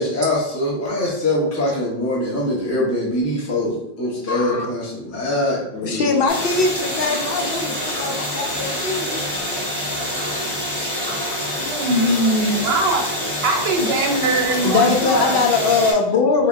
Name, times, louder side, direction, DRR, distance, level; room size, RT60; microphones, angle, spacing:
voice 1, 0.0-6.2, left 1 dB, 15° left, 0.7 m, -23 dB
voice 2, 4.3-4.7 5.8-9.2 14.2-16.5, left 4 dB, 70° left, 0.8 m, -21 dB
sound 1, 6.3-15.9, left 1 dB, 40° left, 1.7 m, -26 dB
voice 3, 11.6-15.4, right 1 dB, 80° right, 1.0 m, -21 dB
3.7 x 3.4 x 2.5 m
omnidirectional pair, 1.0 m